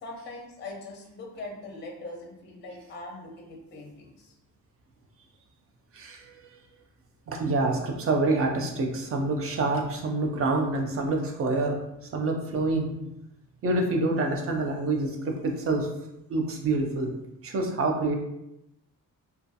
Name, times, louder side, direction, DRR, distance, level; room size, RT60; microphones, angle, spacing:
voice 1, 0.0-4.3, left 2 dB, 35° left, 0 dB, 0.5 m, -41 dB
voice 2, 5.9-6.4 7.3-11.8 12.1-12.9 13.6-15.9 16.3-17.1 17.4-18.1, right 2 dB, 40° right, 2 dB, 0.4 m, -27 dB
2.4 x 2.3 x 2.6 m, 0.84 s
cardioid pair, 145°, 34 cm